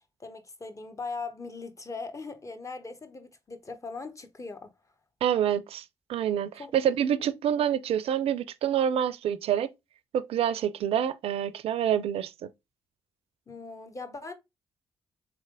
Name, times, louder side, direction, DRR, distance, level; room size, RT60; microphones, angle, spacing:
voice 1, 0.2-4.7 6.6-6.7 7.2-7.3 13.5-14.3, left 4 dB, 30° left, 1.0 m, -40 dB
voice 2, 5.2-5.8 6.1-9.7 10.1-12.5, right 9 dB, 70° right, 0.4 m, -27 dB
3.8 x 3.3 x 3.7 m
supercardioid pair, 50°, 10 cm